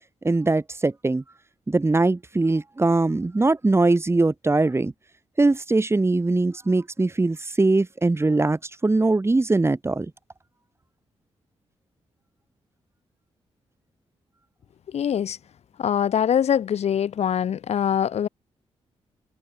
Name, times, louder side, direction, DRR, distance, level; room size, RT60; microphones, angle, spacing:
voice 1, 0.2-1.2 1.7-4.9 5.4-10.1, right 2 dB, 25° right, 5.9 m, -21 dB
voice 2, 14.9-15.4 15.8-18.3, left 9 dB, 70° left, 3.6 m, -23 dB
cardioid pair, 75°, 11 cm